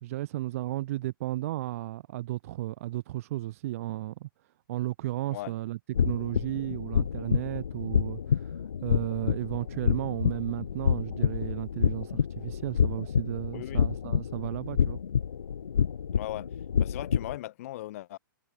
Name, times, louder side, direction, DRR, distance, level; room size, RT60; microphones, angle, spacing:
voice 1, 0.0-4.3 4.7-15.0, right 16 dB, 40° right, 1.4 m, -34 dB
sound 1, 5.9-17.4, left 7 dB, 65° left, 0.7 m, -28 dB
voice 2, 13.5-13.8 16.1-16.5 16.8-18.2, left 15 dB, 40° left, 3.4 m, -38 dB
figure-of-eight pair, 120°, 11 cm